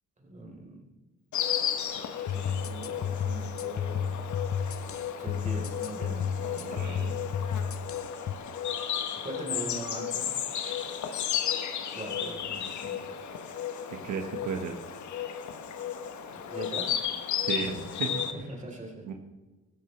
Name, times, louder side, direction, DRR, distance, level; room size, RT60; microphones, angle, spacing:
voice 1, 0.2-0.8 2.3-4.2 5.2-7.0 9.1-10.3 11.9-13.1 16.3-16.9 18.3-19.1, right 2 dB, 25° right, 0 dB, 3.9 m, -41 dB
Insect, 1.3-18.3, left 9 dB, 70° left, 1.2 m, -34 dB
sound 1, 2.3-8.3, left 7 dB, 50° left, 0.7 m, -32 dB
voice 2, 6.6-7.1 13.9-14.7 17.4-18.2 19.0-19.1, right 6 dB, 75° right, 4 dB, 1.5 m, -34 dB
16.0 x 13.0 x 3.3 m, 1.2 s
cardioid pair, 90°, 30 cm